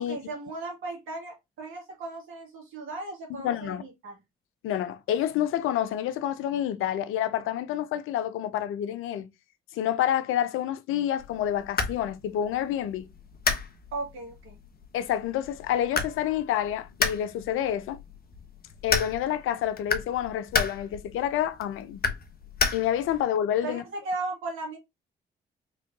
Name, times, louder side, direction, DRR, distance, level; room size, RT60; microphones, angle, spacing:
voice 1, 0.1-4.2 13.9-14.6 23.6-24.8, right 3 dB, 75° right, 2.2 m, -36 dB
voice 2, 3.3-3.8 4.6-9.3 9.7-13.1 14.9-18.0 18.8-22.0 22.7-23.8, left 11 dB, 75° left, 0.5 m, -28 dB
sound 1, 11.2-23.2, left 5 dB, 45° left, 1.0 m, -33 dB
4.3 x 3.3 x 2.7 m
hypercardioid pair, 50°, 21 cm